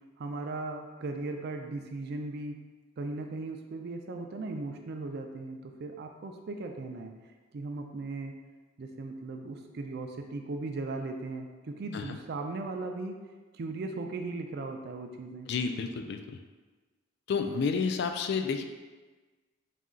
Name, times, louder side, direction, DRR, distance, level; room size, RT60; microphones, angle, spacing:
voice 1, 0.2-2.6 3.0-7.1 7.5-8.3 8.8-13.2 13.5-15.5, right 3 dB, 55° right, 4 dB, 0.4 m, -37 dB
voice 2, 15.5-16.4 17.3-18.6, left 5 dB, 55° left, 6 dB, 0.3 m, -30 dB
4.1 x 2.3 x 3.7 m, 1.3 s
head